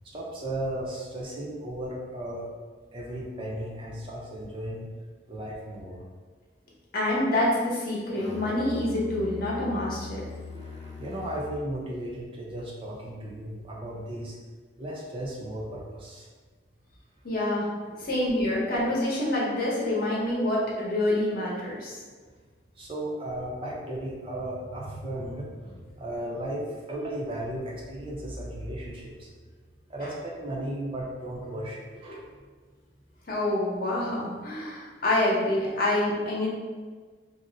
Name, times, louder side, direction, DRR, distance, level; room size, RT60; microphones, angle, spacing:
voice 1, 0.0-2.5 2.9-4.9 5.3-6.0 10.5-14.4 14.8-16.3 17.9-18.2 22.3-22.4 22.8-29.3 29.9-32.2, right 1 dB, 30° right, -3 dB, 0.5 m, -35 dB
voice 2, 6.9-10.2 17.2-17.7 18.0-21.9 33.3-36.5, left 1 dB, 50° left, -5 dB, 0.8 m, -27 dB
Musical instrument, 8.1-11.7, left 2 dB, 35° left, 0.3 m, -40 dB
2.6 x 2.0 x 3.8 m, 1.5 s
head